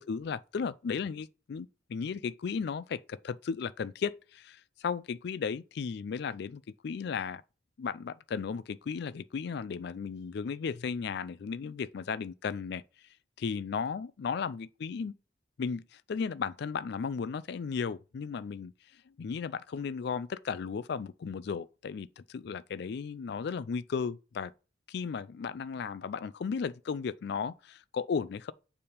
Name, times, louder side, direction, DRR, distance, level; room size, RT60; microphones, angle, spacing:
voice 1, 0.0-7.4 7.8-12.8 13.4-15.1 15.6-18.7 19.1-24.5 24.9-28.5, left 6 dB, 55° left, 0.3 m, -35 dB
6.9 x 3.5 x 5.0 m
head